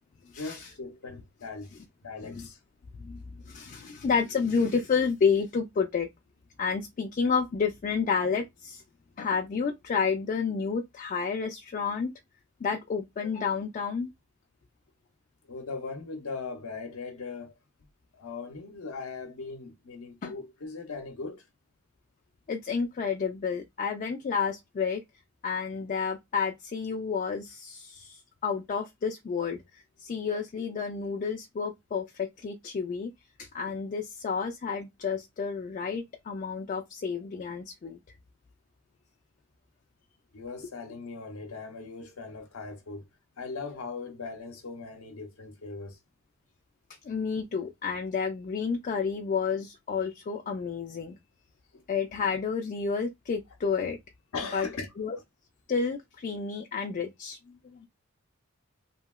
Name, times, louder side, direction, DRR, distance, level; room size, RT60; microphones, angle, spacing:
voice 1, 0.2-1.7 2.0-2.6 15.5-17.5 18.1-21.4 40.3-43.0 43.4-46.0 50.4-50.5 51.7-51.8 54.3-54.9, left 4 dB, 80° left, 0.6 m, -39 dB
voice 2, 3.0-6.1 6.6-8.8 9.2-12.1 12.6-14.1 20.2-20.3 22.5-25.0 25.4-33.1 33.4-38.0 47.0-51.2 51.9-54.0 54.5-54.7 55.0-55.2 55.7-57.4, left 5 dB, 35° left, 0.3 m, -30 dB
2.8 x 2.7 x 2.2 m
head